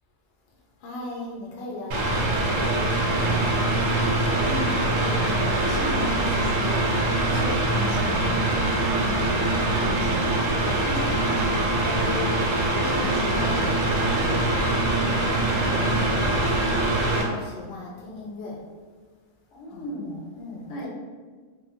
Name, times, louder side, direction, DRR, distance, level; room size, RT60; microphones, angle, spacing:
voice 1, 0.8-3.3 15.6-16.2 16.5-18.7 19.7-20.0 20.4-20.9, left 2 dB, 60° left, -2 dB, 0.8 m, -38 dB
Mechanical fan, 1.9-17.2, right 2 dB, 85° right, 1.0 m, -23 dB
voice 2, 4.4-8.5 9.0-15.3 15.7-16.3 19.5-20.3 20.7-20.9, left 2 dB, 80° left, -4 dB, 1.1 m, -35 dB
3.0 x 2.2 x 2.6 m, 1.5 s
omnidirectional pair, 1.3 m